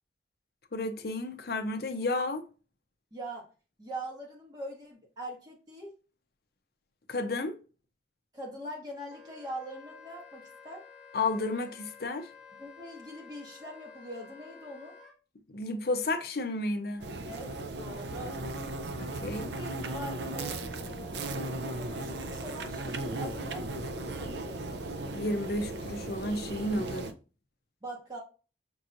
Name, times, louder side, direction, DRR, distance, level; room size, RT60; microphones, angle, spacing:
voice 1, 0.7-2.5 7.1-7.6 11.1-12.3 15.5-17.1 19.0-19.5 25.1-27.1, left 2 dB, 55° left, 0.6 m, -32 dB
voice 2, 3.1-3.5 3.8-5.9 8.3-10.9 12.6-15.0 17.2-18.4 19.3-23.7 24.2-24.6 27.8-28.2, right 1 dB, 20° right, 1.2 m, -43 dB
Wind instrument woodwind instrument, 9.1-15.1, left 5 dB, 5° right, 1.0 m, -52 dB
sound 1, 17.0-27.1, right 2 dB, 65° right, 0.5 m, -37 dB
5.3 x 2.9 x 2.5 m
head